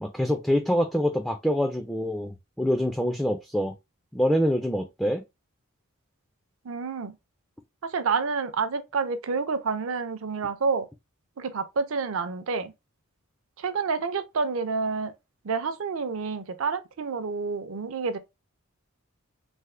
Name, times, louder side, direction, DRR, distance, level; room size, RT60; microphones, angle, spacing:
voice 1, 0.0-3.7 4.1-5.2, equal, ahead, 0.3 m, -25 dB
voice 2, 6.6-7.1 7.8-10.9 11.4-12.7 13.6-15.1 15.4-18.2, right 4 dB, 65° right, 0.5 m, -28 dB
3.4 x 2.1 x 3.1 m
head